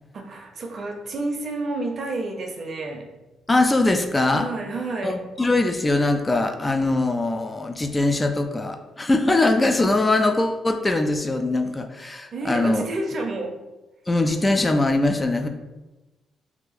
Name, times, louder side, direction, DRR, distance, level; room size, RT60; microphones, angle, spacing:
voice 1, 0.1-3.1 4.3-5.3 12.3-13.6, right 2 dB, 50° right, 3 dB, 0.6 m, -30 dB
voice 2, 3.5-4.5 5.0-12.8 14.1-15.5, left 2 dB, 20° left, 5 dB, 0.3 m, -22 dB
2.8 x 2.3 x 3.9 m, 1.1 s
cardioid pair, 90°, 0 cm